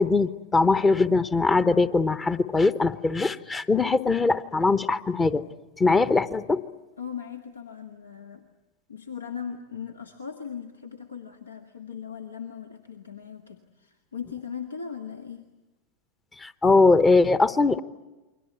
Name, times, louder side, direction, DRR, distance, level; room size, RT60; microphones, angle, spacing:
voice 1, 0.0-5.4 5.8-6.6 16.4-17.8, left 3 dB, 15° left, 14 dB, 0.9 m, -21 dB
voice 2, 7.0-8.4 8.9-15.5, left 7 dB, 75° left, 5 dB, 1.6 m, -38 dB
29.0 x 23.0 x 8.3 m, 1.1 s
figure-of-eight pair, 90°, 0 cm